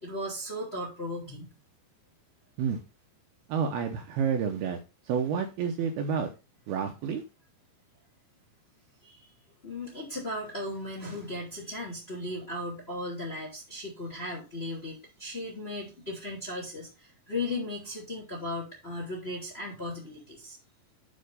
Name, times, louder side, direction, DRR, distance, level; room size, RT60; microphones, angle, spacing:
voice 1, 0.0-1.5 9.0-9.3 9.6-20.6, left 1 dB, 20° left, -1 dB, 1.9 m, -36 dB
voice 2, 3.5-4.8 5.1-6.3 6.7-7.2, right 7 dB, 75° right, 4 dB, 2.5 m, -29 dB
8.8 x 4.4 x 5.2 m, 0.30 s
omnidirectional pair, 5.1 m